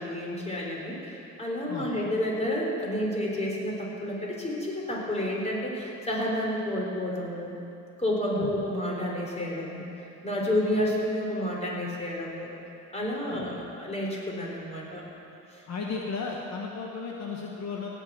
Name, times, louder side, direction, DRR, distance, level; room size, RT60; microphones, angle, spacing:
voice 1, 0.0-7.5 8.0-12.5 12.9-15.0 15.5-15.6, left 1 dB, 20° left, -3 dB, 3.9 m, -30 dB
voice 2, 15.7-17.9, left 4 dB, 60° left, -1 dB, 1.5 m, -34 dB
16.5 x 6.9 x 9.1 m, 2.8 s
cardioid pair, 90°, 30 cm